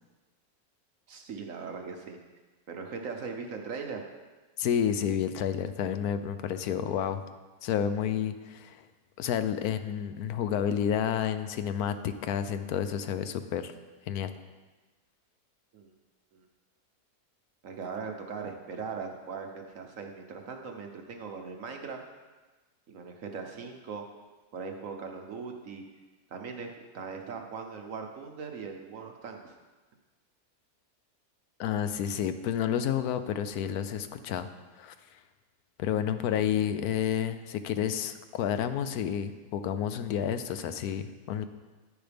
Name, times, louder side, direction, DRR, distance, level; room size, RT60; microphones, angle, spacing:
voice 1, 1.1-2.2 2.7-4.0 15.7-15.9 16.3-16.4 17.6-22.0 22.9-24.1 24.5-25.8 26.3-29.5, right 5 dB, 60° right, 3 dB, 1.2 m, -39 dB
voice 2, 4.6-7.2 7.6-8.8 9.2-13.7 14.1-14.3 31.6-34.5 34.8-34.9 35.8-41.5, left 9 dB, 75° left, 10 dB, 1.1 m, -30 dB
10.0 x 9.7 x 3.4 m, 1.2 s
omnidirectional pair, 1.7 m